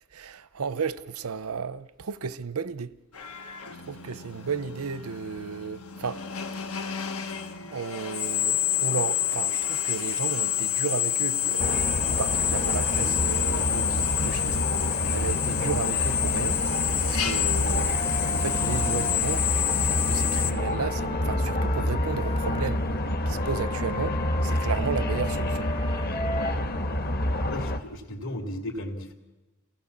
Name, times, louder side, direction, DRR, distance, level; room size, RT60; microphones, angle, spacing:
voice 1, 0.1-3.0 3.9-6.2 7.7-11.7 12.0-14.6 15.1-16.6 17.0-18.0 18.3-19.5 20.1-22.9 23.3-25.7, right 5 dB, 85° right, 0.7 m, -33 dB
Drill, 3.1-20.5, left 10 dB, 85° left, 1.6 m, -28 dB
sound 1, 11.6-27.8, left 1 dB, 45° left, 1.4 m, -28 dB
Wind instrument woodwind instrument, 17.9-22.7 23.4-26.5, left 3 dB, 25° left, 0.8 m, -37 dB
voice 2, 27.4-29.1, left 1 dB, 65° left, 3.2 m, -35 dB
29.0 x 18.0 x 7.4 m
head